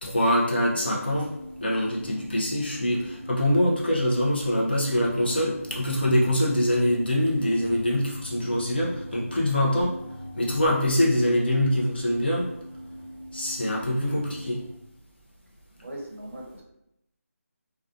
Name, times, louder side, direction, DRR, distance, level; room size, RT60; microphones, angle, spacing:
voice 1, 0.0-1.3 1.6-9.9 10.4-12.5 13.3-14.6, left 1 dB, 40° left, -4 dB, 0.6 m, -24 dB
sound 1, 0.6-14.8, equal, 5° left, 0.9 m, -41 dB
voice 2, 15.8-16.6, right 1 dB, 50° right, 0 dB, 0.7 m, -39 dB
2.4 x 2.3 x 2.5 m, 0.82 s
figure-of-eight pair, 175°, 8 cm